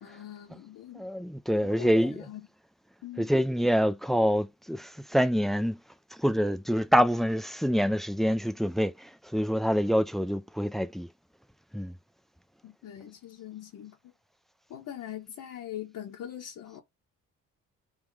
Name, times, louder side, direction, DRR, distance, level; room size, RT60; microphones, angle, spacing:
voice 1, 0.0-1.0 1.6-2.5 3.0-3.3 12.6-14.1 14.7-16.8, left 11 dB, 70° left, 1.1 m, -42 dB
voice 2, 0.9-2.3 3.2-5.8 6.1-11.1 11.7-11.9, equal, ahead, 0.4 m, -26 dB
3.6 x 2.9 x 4.7 m
cardioid pair, 120°, 33 cm